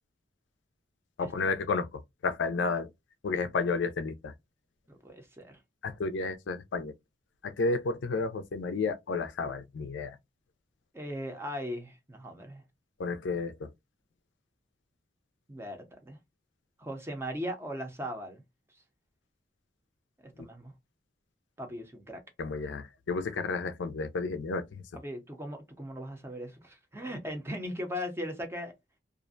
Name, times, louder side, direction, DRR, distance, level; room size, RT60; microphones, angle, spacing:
voice 1, 1.2-2.9 3.2-4.3 5.8-6.9 7.4-10.2 13.0-13.7 22.4-24.8, left 4 dB, 80° left, 0.4 m, -32 dB
voice 2, 4.9-5.6 10.9-12.6 15.5-16.2 16.8-18.4 20.2-20.7 21.6-22.2 24.9-28.7, equal, 15° right, 0.6 m, -38 dB
2.4 x 2.1 x 2.4 m
head